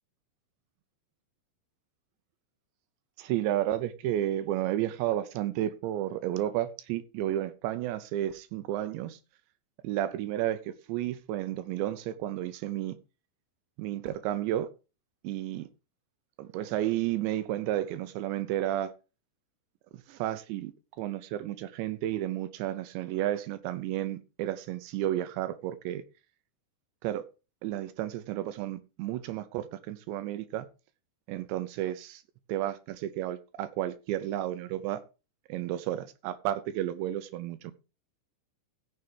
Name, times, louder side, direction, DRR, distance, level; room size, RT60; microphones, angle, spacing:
voice 1, 3.2-9.2 9.8-13.0 13.8-14.7 15.2-15.7 16.4-18.9 20.1-20.7 21.0-26.0 27.0-27.2 27.6-30.7 31.3-32.2 32.5-35.0 35.5-37.7, right 13 dB, 80° right, 2.7 m, -32 dB
15.5 x 6.9 x 3.4 m
omnidirectional pair, 5.5 m